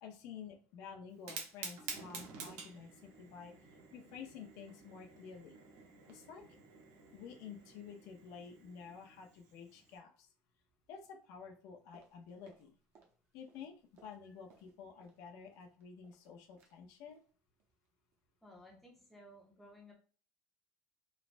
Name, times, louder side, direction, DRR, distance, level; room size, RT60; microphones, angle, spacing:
voice 1, 0.0-3.5 3.9-5.6 6.1-6.6 7.1-10.3 10.9-12.8 13.3-13.7 14.0-17.2, left 6 dB, 70° left, 3 dB, 0.5 m, -51 dB
Fire, 1.1-10.0, right 5 dB, 85° right, 0.7 m, -50 dB
sound 1, 11.9-13.2 13.4-15.2 15.5-16.3 16.6-16.8 17.1-17.3 17.6-17.9 18.1-18.2, right 5 dB, 50° right, 0.6 m, -67 dB
voice 2, 18.4-19.9, equal, 5° left, -2 dB, 0.6 m, -57 dB
3.1 x 2.1 x 2.5 m, 0.40 s
cardioid pair, 175°, 6 cm